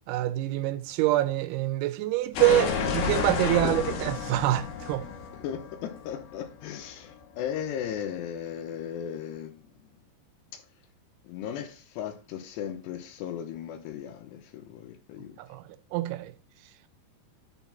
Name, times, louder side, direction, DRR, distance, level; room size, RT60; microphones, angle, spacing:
voice 1, 0.1-5.0 15.4-15.6 15.9-16.3, right 16 dB, 85° right, 3.0 m, -26 dB
sound 1, 2.3-7.1, left 6 dB, 65° left, 2.8 m, -31 dB
voice 2, 3.6-4.0 5.4-9.9 10.5-10.7 11.2-15.4, left 9 dB, 85° left, 2.7 m, -37 dB
10.0 x 4.0 x 4.1 m
omnidirectional pair, 5.3 m